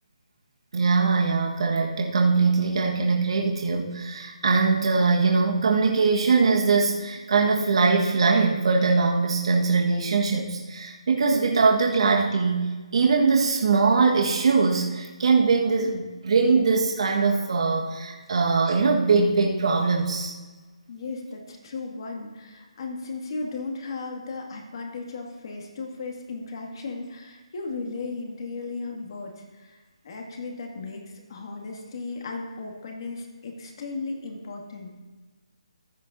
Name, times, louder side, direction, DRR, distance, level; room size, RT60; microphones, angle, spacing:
voice 1, 0.7-20.3, right 4 dB, 60° right, 0 dB, 1.4 m, -22 dB
voice 2, 20.9-35.0, left 3 dB, 45° left, 1 dB, 2.0 m, -36 dB
14.5 x 9.2 x 2.6 m, 1.3 s
hypercardioid pair, 160°, 3 cm